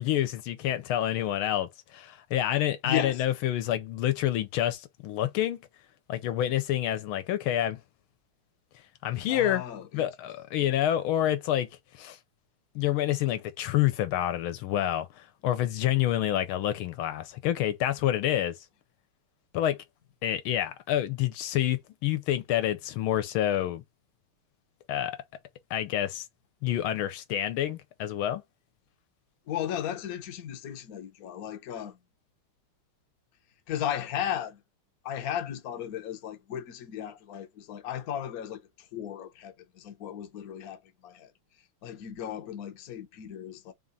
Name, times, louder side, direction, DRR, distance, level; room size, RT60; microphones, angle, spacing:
voice 1, 0.0-1.7 1.9-5.6 6.1-7.8 9.0-9.6 9.9-11.7 12.0-12.2 12.7-18.6 19.5-19.8 20.2-23.8 24.9-25.2 25.7-26.2 26.6-28.4, left 12 dB, 75° left, 1.4 m, -28 dB
voice 2, 2.8-3.2 9.3-10.1 10.6-10.7 29.5-32.0 33.7-34.6 35.0-41.3 41.8-43.7, left 10 dB, 60° left, 1.0 m, -35 dB
3.7 x 2.4 x 3.9 m
omnidirectional pair, 2.4 m